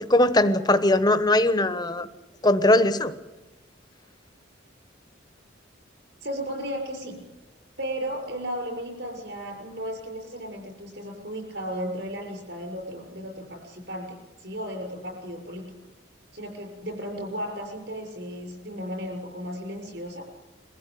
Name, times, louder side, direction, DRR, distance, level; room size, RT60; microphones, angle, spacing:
voice 1, 0.0-2.1 2.4-3.1, left 1 dB, 20° left, 11 dB, 1.1 m, -20 dB
voice 2, 6.2-7.2 7.8-15.7 16.3-20.2, equal, 60° right, 2 dB, 6.6 m, -35 dB
23.0 x 15.0 x 9.3 m, 1.1 s
head